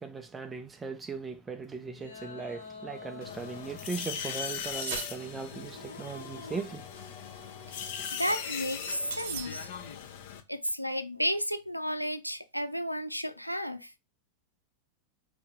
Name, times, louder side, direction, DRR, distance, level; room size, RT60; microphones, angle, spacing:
voice 1, 0.0-6.8, right 4 dB, 15° right, 0.5 m, -38 dB
sound 1, 1.9-8.2, left 4 dB, 75° left, 1.2 m, -49 dB
sound 2, 3.2-10.4, left 7 dB, 50° left, 0.7 m, -39 dB
sound 3, 4.8-5.7 9.1-10.0, right 6 dB, 50° right, 1.0 m, -40 dB
voice 2, 8.1-9.7 10.5-13.9, equal, 90° right, 0.4 m, -32 dB
4.6 x 2.7 x 3.5 m
figure-of-eight pair, 90°, 0 cm